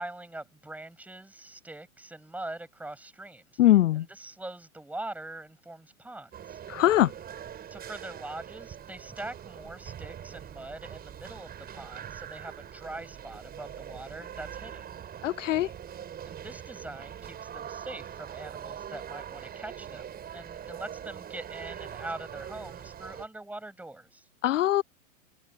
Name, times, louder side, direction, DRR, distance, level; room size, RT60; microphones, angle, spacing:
voice 1, 0.0-6.6 7.7-14.8 16.3-20.0 20.3-24.3, right 2 dB, 5° right, 6.9 m, -43 dB
voice 2, 3.6-4.1 6.7-7.1 15.2-15.7 24.4-24.8, left 14 dB, 65° left, 0.5 m, -22 dB
sound 1, 6.3-23.3, right 9 dB, 20° right, 7.9 m, -43 dB
hypercardioid pair, 115°, 41 cm